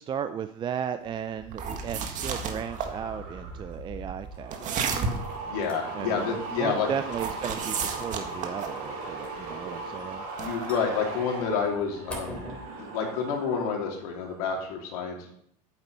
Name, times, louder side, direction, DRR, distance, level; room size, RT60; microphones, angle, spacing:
voice 1, 0.0-4.9 5.9-10.2, right 8 dB, 25° right, 10 dB, 0.5 m, -35 dB
sound 1, 1.0-12.6, left 1 dB, 5° left, 3.2 m, -49 dB
sound 2, 1.3-13.9 14.2-14.7, right 3 dB, 70° right, 4.5 m, -39 dB
sound 3, 1.5-2.9 4.5-5.3 7.1-8.8 10.4-10.7, right 5 dB, 40° right, 1.8 m, -32 dB
voice 2, 5.5-6.9 10.4-12.4 12.7-15.3, left 6 dB, 75° left, 1 dB, 3.1 m, -29 dB
9.3 x 7.9 x 5.5 m, 0.68 s
supercardioid pair, 120°, 19 cm